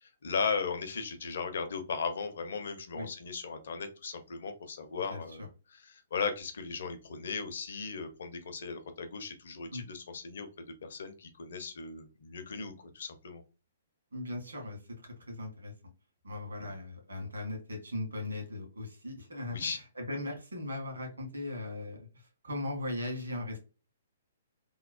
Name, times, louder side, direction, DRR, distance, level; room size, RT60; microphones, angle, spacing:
voice 1, 0.0-10.5 10.8-13.4 16.6-16.7 19.5-19.8, left 5 dB, 55° left, 7 dB, 0.6 m, -37 dB
voice 2, 14.1-15.7 16.2-23.6, left 2 dB, 70° right, 1 dB, 1.3 m, -38 dB
3.0 x 2.3 x 2.2 m, 0.32 s
figure-of-eight pair, 120°, 0 cm